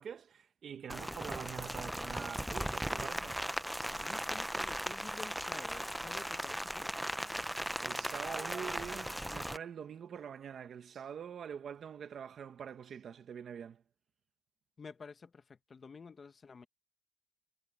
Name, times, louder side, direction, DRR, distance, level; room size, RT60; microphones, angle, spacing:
voice 1, 0.0-3.4 7.8-13.8, right 8 dB, 85° right, 1.1 m, -45 dB
Rain, 0.9-9.6, equal, 5° right, 0.5 m, -38 dB
voice 2, 4.0-6.9 14.8-16.7, left 5 dB, 50° left, 1.1 m, -51 dB
wide cardioid pair, 105°, 0 cm